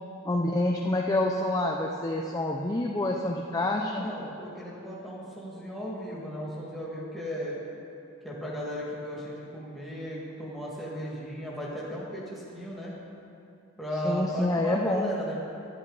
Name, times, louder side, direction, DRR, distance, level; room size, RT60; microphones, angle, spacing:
voice 1, 0.2-4.1 14.0-15.1, left 1 dB, 15° left, 0 dB, 0.5 m, -27 dB
voice 2, 3.8-7.6 8.2-12.9 13.8-15.4, equal, ahead, -7 dB, 2.1 m, -36 dB
12.5 x 10.5 x 4.0 m, 2.7 s
head